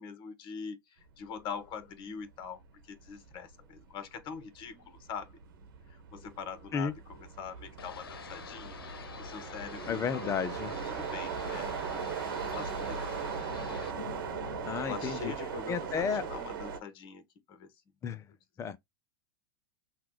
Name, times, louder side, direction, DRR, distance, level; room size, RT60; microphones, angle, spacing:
voice 1, 0.0-5.3 5.9-6.9 7.2-10.3 10.7-11.7 12.3-13.1 14.8-17.7, left 6 dB, 40° left, 1.3 m, -43 dB
sound 1, 1.8-2.0 2.4-16.8, right 7 dB, 65° right, 1.1 m, -39 dB
sound 2, 7.8-13.9, left 6 dB, 80° left, 0.8 m, -47 dB
voice 2, 9.9-10.7 14.7-15.3 15.7-16.2 18.0-18.3 18.6-18.8, left 6 dB, 25° left, 0.6 m, -32 dB
sound 3, 10.1-15.1, left 6 dB, 60° left, 1.1 m, -48 dB
5.7 x 2.4 x 3.1 m
hypercardioid pair, 105°, 12 cm